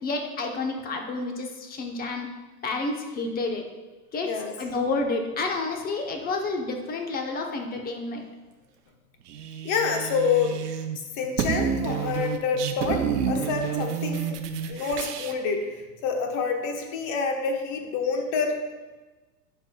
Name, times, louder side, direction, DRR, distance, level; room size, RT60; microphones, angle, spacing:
voice 1, 0.0-2.3 2.6-3.6 4.1-8.2, left 3 dB, 20° left, 3 dB, 0.8 m, -30 dB
sound 1, 9.3-11.0 11.2-15.3, right 7 dB, 80° right, 0.8 m, -29 dB
voice 2, 9.6-10.6 11.2-14.4 14.7-18.6, left 5 dB, 40° left, 3 dB, 1.1 m, -27 dB
10.0 x 4.6 x 2.3 m, 1.2 s
hypercardioid pair, 115°, 47 cm